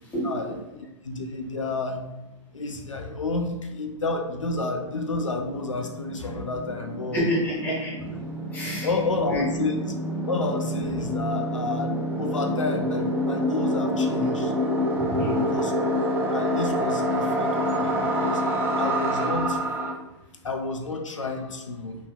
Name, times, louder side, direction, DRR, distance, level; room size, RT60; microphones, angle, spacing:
voice 1, 0.2-2.1 2.5-7.2 8.8-10.0 10.3-11.9 12.2-14.5 15.4-15.9 16.3-18.4 18.8-19.6 20.4-22.0, left 3 dB, 85° left, 3 dB, 0.4 m, -30 dB
sound 1, 4.4-4.5 4.7-19.9, equal, 15° right, 0.6 m, -27 dB
voice 2, 7.1-8.2 8.5-8.9 9.3-9.4 15.1-15.4, equal, 10° left, -5 dB, 1.2 m, -28 dB
3.2 x 2.8 x 2.2 m, 0.96 s
figure-of-eight pair, 110°, 16 cm